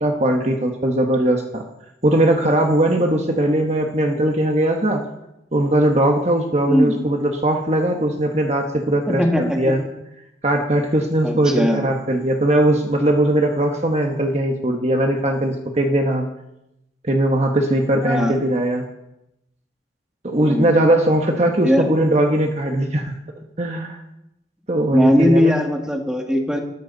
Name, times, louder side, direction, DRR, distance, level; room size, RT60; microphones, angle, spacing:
voice 1, 0.0-1.6 2.0-5.0 5.5-9.8 10.4-16.3 17.1-18.8 20.2-23.1 23.6-24.0 24.7-25.5, right 1 dB, 35° right, 2 dB, 1.3 m, -19 dB
voice 2, 9.1-9.6 11.2-11.8 18.0-18.4 20.4-20.7 21.6-21.8 24.9-26.6, equal, 5° right, 1 dB, 2.1 m, -19 dB
19.0 x 14.0 x 4.1 m, 0.86 s
head